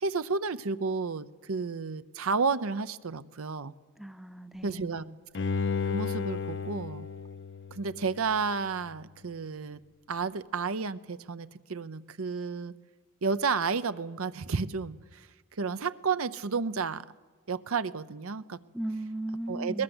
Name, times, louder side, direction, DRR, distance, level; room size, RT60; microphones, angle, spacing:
voice 1, 0.0-3.7 4.6-5.0 5.8-7.1 7.7-9.8 10.1-12.7 13.2-17.0 17.5-18.6 19.5-19.8, right 4 dB, 70° right, 13 dB, 0.7 m, -31 dB
voice 2, 4.0-5.1 18.7-19.8, right 1 dB, ahead, 11 dB, 0.8 m, -37 dB
Bowed string instrument, 5.4-8.5 8.9-9.0, left 5 dB, 55° left, 0.7 m, -33 dB
21.5 x 19.5 x 7.9 m, 1.4 s
head